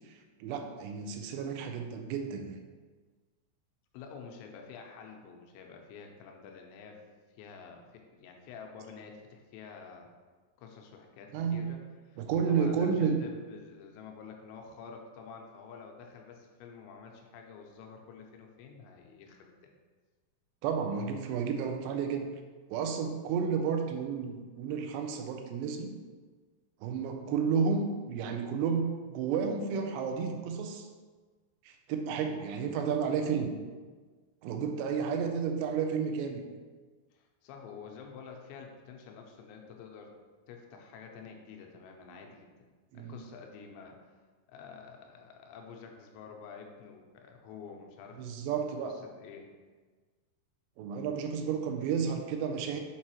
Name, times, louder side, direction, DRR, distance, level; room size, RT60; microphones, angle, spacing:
voice 1, 0.1-2.6 11.3-11.6 12.2-13.2 20.6-22.3 22.7-25.9 26.8-30.9 31.7-33.5 34.4-36.4 42.9-43.2 48.2-49.0 50.8-52.8, right 6 dB, 85° right, 5 dB, 2.8 m, -31 dB
voice 2, 3.9-7.0 7.4-10.1 10.6-11.8 12.1-12.2 12.5-19.7 37.1-40.1 40.5-42.5 42.9-44.1 44.5-48.5 48.8-49.5, left 6 dB, 90° left, 2 dB, 2.9 m, -49 dB
7.3 x 4.7 x 2.9 m, 1.4 s
omnidirectional pair, 5.0 m